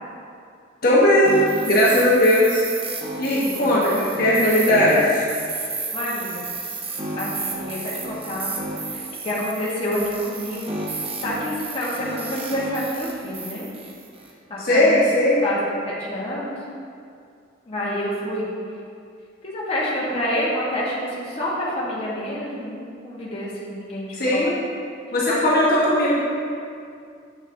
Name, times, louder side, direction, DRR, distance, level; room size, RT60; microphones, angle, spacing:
voice 1, 0.8-1.4 1.7-2.7 3.2-5.2 14.6-15.4 24.1-24.5 25.1-26.3, left 1 dB, 50° left, -7 dB, 1.0 m, -18 dB
sound 1, 1.3-14.3, right 3 dB, 30° right, 0.7 m, -32 dB
voice 2, 3.4-3.7 5.9-6.5 7.2-8.5 8.9-13.7 14.5-15.0 15.4-16.6 17.7-18.5 19.4-24.5 25.3-25.4, equal, 30° left, -7 dB, 1.2 m, -28 dB
7.6 x 6.1 x 2.6 m, 2.3 s
head